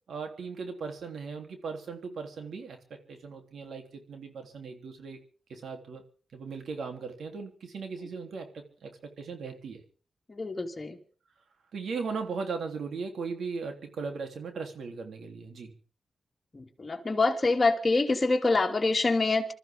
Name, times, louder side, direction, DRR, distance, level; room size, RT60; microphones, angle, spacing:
voice 1, 0.1-5.2 5.5-6.0 6.3-9.8 11.7-15.7, right 5 dB, 80° right, 3.4 m, -38 dB
voice 2, 10.3-11.0 16.5-19.5, left 3 dB, 35° left, 2.9 m, -26 dB
26.5 x 14.0 x 3.8 m
cardioid pair, 80°, 0 cm